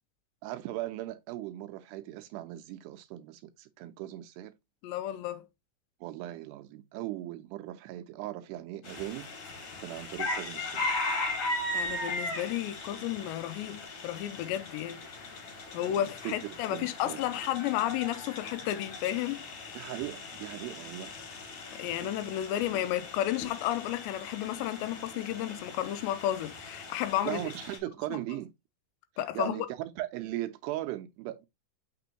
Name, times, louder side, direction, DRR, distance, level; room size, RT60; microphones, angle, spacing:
voice 1, 0.4-4.5 6.0-9.3 9.8-10.9 12.8-12.9 16.0-17.2 19.8-21.1 27.3-28.5 29.3-31.5, right 15 dB, 80° right, 2.4 m, -38 dB
voice 2, 4.8-5.5 11.7-15.0 15.7-19.4 21.7-27.4 28.1-28.2 29.2-29.7, left 12 dB, 90° left, 2.9 m, -32 dB
sound 1, 8.8-27.8, left 2 dB, 50° left, 2.7 m, -38 dB
6.8 x 5.9 x 2.8 m
omnidirectional pair, 5.1 m